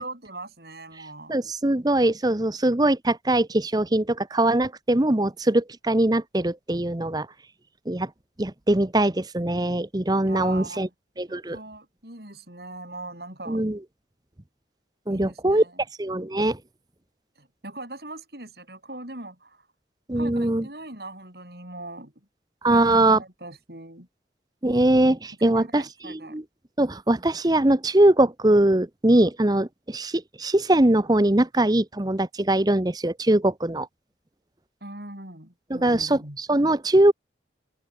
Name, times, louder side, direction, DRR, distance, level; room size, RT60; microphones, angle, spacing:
voice 1, 0.0-1.4 10.2-10.9 11.3-13.6 15.1-15.8 17.4-19.7 20.1-22.1 22.7-24.1 25.4-26.4 34.8-36.4, right 2 dB, 60° right, 7.8 m, -40 dB
voice 2, 1.3-7.3 7.9-8.1 8.4-10.9 11.2-11.6 13.5-13.8 15.1-15.6 16.0-16.6 20.1-20.7 22.6-23.2 24.6-25.8 26.1-26.4 26.8-33.9 35.7-37.1, right 1 dB, 20° right, 0.9 m, -21 dB
head